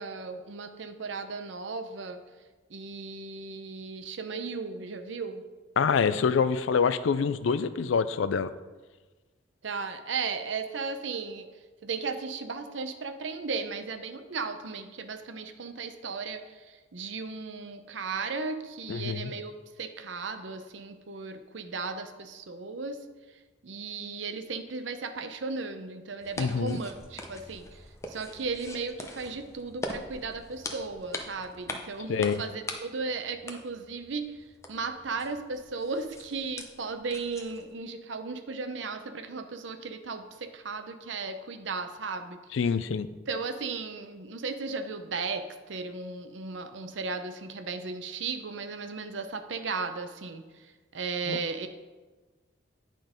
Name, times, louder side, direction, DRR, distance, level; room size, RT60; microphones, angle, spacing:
voice 1, 0.0-2.2 2.7-5.4 9.6-11.5 11.8-19.5 19.8-23.0 23.6-27.8 28.1-34.4 34.7-42.4 43.3-51.7, right 4 dB, 75° right, 8 dB, 0.6 m, -36 dB
voice 2, 5.8-8.5 18.9-19.3 26.4-26.8 32.1-32.4 42.5-43.1 51.3-51.4, left 5 dB, 80° left, 13 dB, 0.4 m, -26 dB
sound 1, 26.2-37.8, left 1 dB, 15° left, 0.6 m, -42 dB
9.5 x 3.8 x 5.1 m, 1.3 s
head